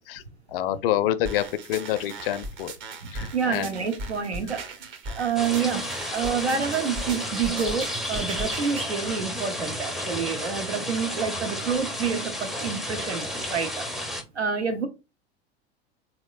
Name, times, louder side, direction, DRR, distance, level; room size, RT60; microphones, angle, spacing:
voice 1, 0.5-2.7 3.1-3.7 6.1-6.2 9.0-9.2, left 12 dB, 60° left, 0.4 m, -27 dB
sound 1, 1.2-8.9, right 2 dB, 35° right, 0.8 m, -38 dB
voice 2, 3.0-13.8 14.3-14.9, right 6 dB, 85° right, 0.7 m, -28 dB
sound 2, 5.4-14.2, equal, ahead, 0.5 m, -32 dB
3.3 x 2.8 x 2.3 m
figure-of-eight pair, 85°, 32 cm